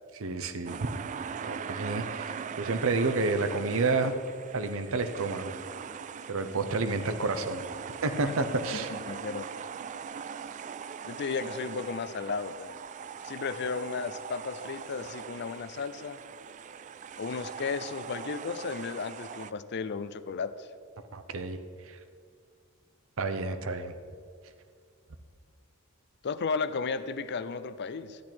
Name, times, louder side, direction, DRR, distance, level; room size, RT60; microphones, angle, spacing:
voice 1, 0.2-0.9 1.4-4.1 4.5-5.5 6.3-7.6 8.0-8.9 21.1-21.6 21.9-22.0 23.2-23.9, right 3 dB, 70° right, 9 dB, 0.8 m, -30 dB
sound 1, 0.7-19.5, right 7 dB, 35° right, 0.3 m, -41 dB
voice 2, 8.7-9.5 11.0-12.7 13.2-16.2 17.2-20.7 26.2-28.2, left 5 dB, 55° left, 13 dB, 0.5 m, -34 dB
13.0 x 10.5 x 4.5 m, 2.2 s
head